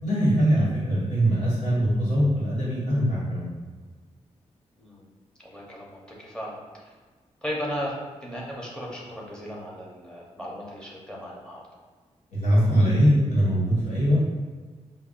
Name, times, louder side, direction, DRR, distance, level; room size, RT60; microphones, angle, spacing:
voice 1, 0.0-3.5 12.3-14.2, equal, 90° left, -7 dB, 1.2 m, -22 dB
voice 2, 5.4-6.6 7.4-7.9 8.2-11.6, equal, 5° left, -4 dB, 0.8 m, -36 dB
5.3 x 2.1 x 2.5 m, 1.4 s
wide cardioid pair, 125°, 12 cm